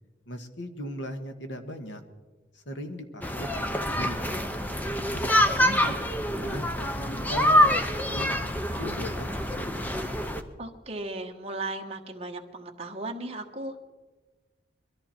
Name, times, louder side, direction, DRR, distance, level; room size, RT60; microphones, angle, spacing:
voice 1, 0.3-2.0 2.5-6.0 6.3-10.0, equal, 80° left, 6 dB, 1.6 m, -39 dB
sound 1, 3.2-10.4, left 1 dB, 10° left, 0.7 m, -26 dB
voice 2, 10.6-13.8, right 2 dB, 30° right, 3 dB, 1.2 m, -36 dB
22.0 x 14.0 x 4.4 m, 1.3 s
head